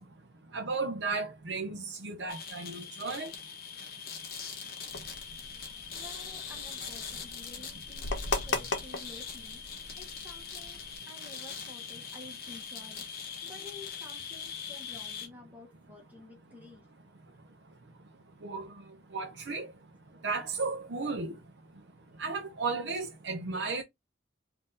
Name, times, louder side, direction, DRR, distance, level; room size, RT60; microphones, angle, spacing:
voice 1, 0.5-3.3 18.4-18.7 19.1-19.7 20.2-21.3 22.2-23.8, right 4 dB, 80° right, 0.7 m, -34 dB
sound 1, 2.3-15.3, left 7 dB, 50° left, 1.1 m, -42 dB
sound 2, 4.9-11.0, left 3 dB, 80° left, 0.9 m, -38 dB
voice 2, 5.6-16.9, left 2 dB, 10° right, 1.2 m, -52 dB
3.8 x 2.8 x 3.8 m
head